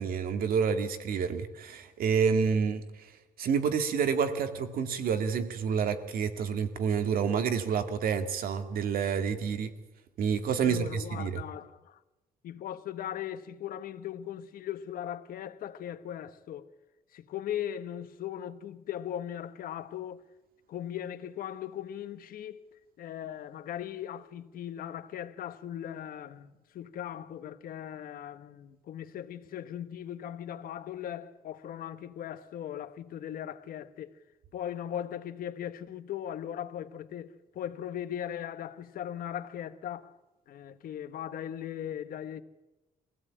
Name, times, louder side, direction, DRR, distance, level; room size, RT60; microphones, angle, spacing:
voice 1, 0.0-2.8 3.4-9.7 10.2-11.4, right 6 dB, 85° right, 2.1 m, -28 dB
voice 2, 10.6-12.0 12.4-16.7 17.1-20.2 20.7-22.6 23.0-34.2 34.5-40.2 40.5-42.4, left 10 dB, 85° left, 1.2 m, -38 dB
24.0 x 16.0 x 8.7 m
cardioid pair, 145°, 15 cm